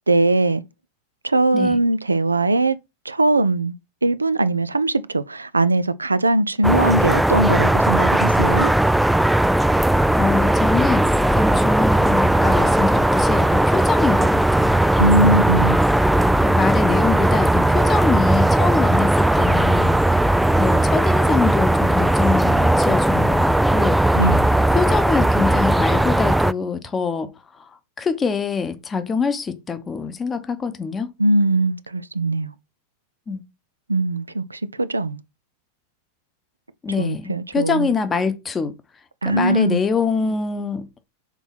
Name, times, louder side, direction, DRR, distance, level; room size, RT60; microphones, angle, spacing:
voice 1, 0.1-0.6 1.2-2.8 3.0-3.7 4.0-8.7 15.0-15.8 24.1-24.5 31.2-32.5 33.9-35.2 37.0-37.9 39.2-39.8, right 2 dB, 80° right, 0.4 m, -20 dB
sound 1, 6.6-26.5, right 1 dB, 5° right, 0.3 m, -17 dB
voice 2, 9.7-14.8 16.4-20.0 20.6-24.2 24.5-27.7 28.0-31.1 33.3-33.4 36.8-38.7 39.2-40.9, left 5 dB, 20° left, 0.9 m, -25 dB
6.1 x 4.0 x 5.5 m
figure-of-eight pair, 90°, 0 cm